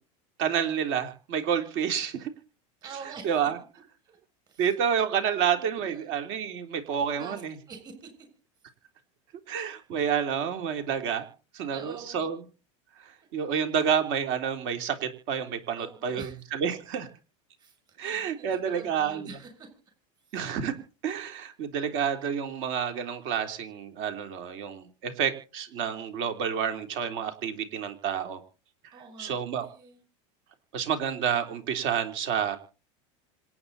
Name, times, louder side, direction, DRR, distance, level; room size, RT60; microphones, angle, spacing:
voice 1, 0.4-2.3 3.2-3.6 4.6-7.5 9.5-11.3 11.5-12.4 13.0-17.1 18.0-19.3 20.3-20.7 21.0-28.4 28.8-29.7 30.7-32.6, right 8 dB, 60° right, 6 dB, 3.5 m, -29 dB
voice 2, 2.8-3.4 4.1-4.2 4.5-4.7 5.5-6.1 7.2-8.1 11.7-12.3 15.8-16.4 17.6-19.7 28.9-30.0, right 5 dB, 25° right, 4 dB, 7.0 m, -45 dB
26.5 x 9.3 x 4.2 m, 0.36 s
supercardioid pair, 145°, 16 cm